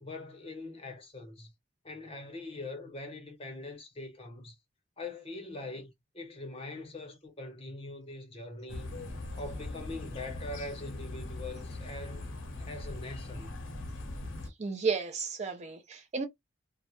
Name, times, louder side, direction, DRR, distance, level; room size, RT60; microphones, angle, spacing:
voice 1, 0.0-1.5 1.8-4.6 5.0-8.9 9.4-12.3 12.6-13.6, left 2 dB, 30° left, 0.8 m, -42 dB
sound 1, 8.7-14.5, left 2 dB, 70° left, 0.7 m, -40 dB
voice 2, 14.6-16.3, right 5 dB, 35° right, 0.5 m, -33 dB
2.3 x 2.1 x 2.8 m
head